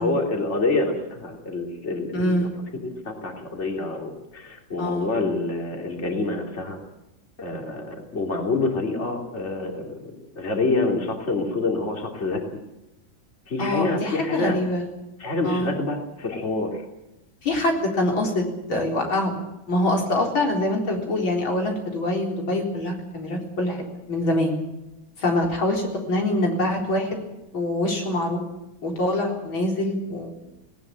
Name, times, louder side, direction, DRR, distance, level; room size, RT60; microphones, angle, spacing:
voice 1, 0.0-2.3 3.0-6.8 7.4-12.4 13.5-14.6 15.2-16.8, left 3 dB, 35° left, 2 dB, 3.4 m, -27 dB
voice 2, 2.1-2.5 4.8-5.1 13.6-14.8 15.4-15.7 17.4-19.4 19.7-23.8 24.1-24.5 25.2-27.2 27.5-28.4 28.8-30.3, left 1 dB, 85° left, 1 dB, 4.9 m, -24 dB
19.5 x 18.5 x 8.9 m, 0.95 s
omnidirectional pair, 2.1 m